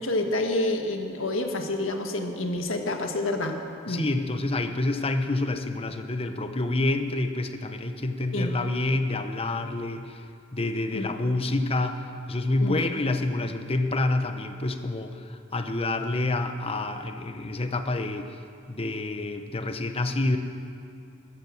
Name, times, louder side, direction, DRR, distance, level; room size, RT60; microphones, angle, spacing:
voice 1, 0.0-3.6 3.8-4.1 8.3-8.5 10.9-11.1 12.6-12.8, left 2 dB, 80° left, 4 dB, 1.7 m, -28 dB
voice 2, 3.9-10.2 10.5-12.0 12.3-18.3 18.7-20.4, left 2 dB, 30° left, 7 dB, 0.9 m, -28 dB
14.0 x 13.5 x 7.3 m, 2.5 s
head